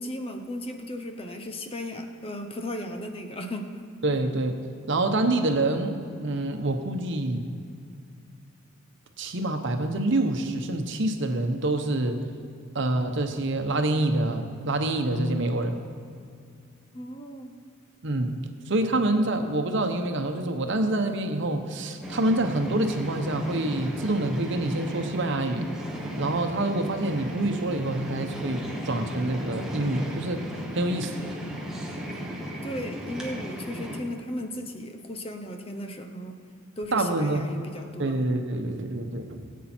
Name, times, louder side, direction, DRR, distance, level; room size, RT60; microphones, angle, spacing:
voice 1, 0.0-3.7 16.9-17.6 32.6-36.4 36.8-38.2, left 1 dB, 30° left, 5 dB, 0.9 m, -36 dB
voice 2, 4.0-4.6 4.9-7.4 9.2-12.2 12.7-15.8 18.0-18.3 18.7-25.7 26.2-30.4 30.7-31.1 36.9-37.5 38.0-39.4, right 2 dB, 60° right, 6 dB, 1.0 m, -26 dB
sound 1, 22.0-34.0, equal, 5° right, 1.4 m, -35 dB
18.0 x 8.4 x 4.4 m, 2.4 s
head